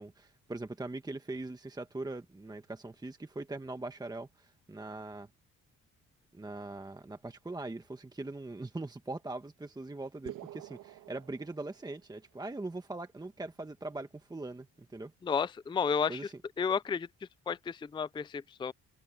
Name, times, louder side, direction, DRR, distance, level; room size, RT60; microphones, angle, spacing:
voice 1, 0.0-5.3 6.3-15.1 16.1-16.3, right 2 dB, 15° right, 1.2 m, -41 dB
sound 1, 10.3-12.2, right 14 dB, 85° right, 1.7 m, -48 dB
voice 2, 15.2-16.3 16.6-17.1 17.5-18.7, left 6 dB, 15° left, 0.4 m, -32 dB
cardioid pair, 90°, 30 cm